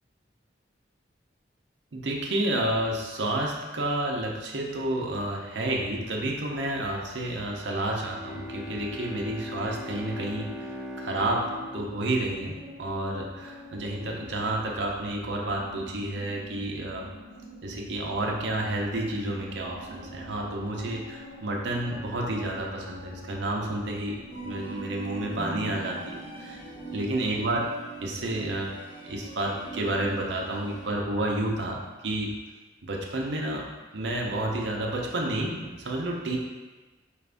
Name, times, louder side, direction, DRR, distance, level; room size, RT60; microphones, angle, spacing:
voice 1, 1.9-17.1 17.6-24.2 24.4-26.6 26.9-27.6 28.0-28.7 29.0-32.3 32.8-33.7 33.9-36.4, right 1 dB, 70° right, -1 dB, 0.6 m, -30 dB
Bowed string instrument, 8.0-12.9, left 1 dB, 5° right, 0.4 m, -40 dB
sound 1, 11.1-26.6, equal, 65° left, 0.7 m, -46 dB
sound 2, 24.3-30.9, right 4 dB, 30° left, 1.2 m, -41 dB
4.7 x 2.5 x 3.4 m, 1.2 s
head